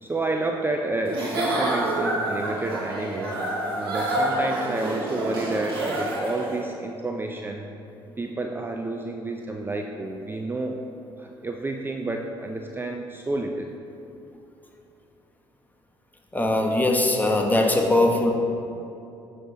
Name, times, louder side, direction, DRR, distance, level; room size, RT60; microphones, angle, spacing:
voice 1, 0.0-3.4 3.8-7.7 8.2-10.8 11.2-13.7, right 2 dB, 15° right, 2 dB, 0.5 m, -30 dB
Giggle / Chuckle chortle, 1.0-6.6, right 1 dB, 90° right, 1.5 m, -27 dB
voice 2, 16.3-18.3, left 2 dB, 15° left, 2 dB, 1.0 m, -21 dB
7.2 x 6.2 x 3.0 m, 2.8 s
hypercardioid pair, 55°, 12 cm